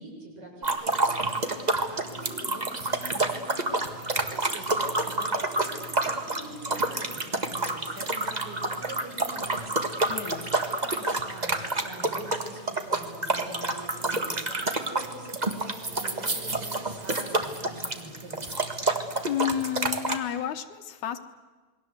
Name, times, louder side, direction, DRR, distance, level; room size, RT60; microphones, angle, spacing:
voice 1, 0.0-3.4 3.8-9.7 10.4-18.4, right 1 dB, 50° right, -1 dB, 8.0 m, -44 dB
sound 1, 0.6-20.2, right 2 dB, 25° right, 1.0 m, -28 dB
sound 2, 1.4-4.3, left 5 dB, 80° right, 9.2 m, -51 dB
voice 2, 10.1-10.5 19.3-21.2, left 10 dB, 80° left, 9 dB, 2.5 m, -31 dB
28.0 x 21.5 x 8.0 m, 1.3 s
omnidirectional pair, 3.3 m